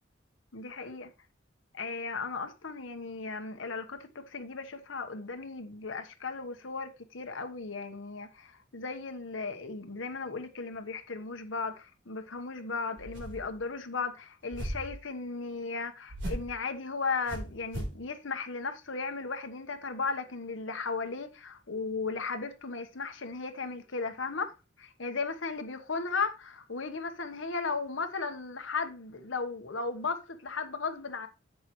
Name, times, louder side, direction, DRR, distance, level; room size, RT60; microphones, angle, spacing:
voice 1, 0.5-1.1 1.7-31.3, left 4 dB, 80° left, 1.2 m, -36 dB
sound 1, 13.0-13.6 14.5-15.0 16.1-16.6 17.3-18.0, right 1 dB, 70° right, 3.7 m, -37 dB
10.5 x 7.5 x 3.1 m
head